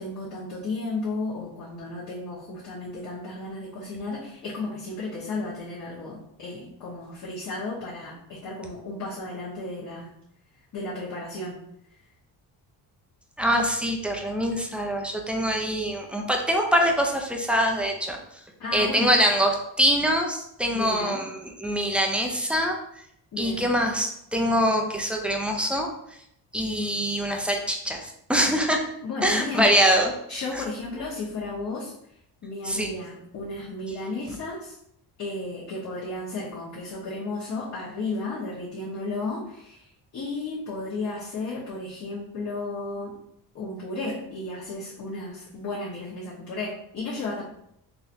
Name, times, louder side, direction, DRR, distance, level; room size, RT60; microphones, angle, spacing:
voice 1, 0.0-10.1 10.7-11.6 18.6-19.1 20.7-21.2 23.3-23.7 29.0-30.0 30.3-31.9 32.4-34.7 35.2-43.2 43.5-47.4, left 2 dB, 50° left, -8 dB, 1.1 m, -33 dB
voice 2, 13.4-18.2 18.7-22.8 23.4-25.9 26.5-28.8 29.2-30.1 30.5-30.6 32.6-32.9, equal, 5° right, 2 dB, 0.4 m, -24 dB
3.9 x 2.8 x 2.5 m, 0.75 s
cardioid pair, 110°, 41 cm